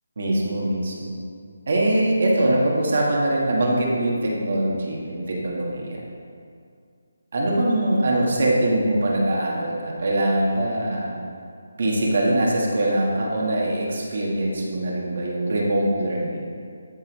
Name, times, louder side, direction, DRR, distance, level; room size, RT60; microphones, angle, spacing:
voice 1, 0.2-1.2 1.7-6.0 7.3-11.1 11.8-16.4, right 1 dB, 45° right, -2 dB, 1.3 m, -22 dB
13.5 x 5.3 x 3.1 m, 2.3 s
hypercardioid pair, 175°, 0 cm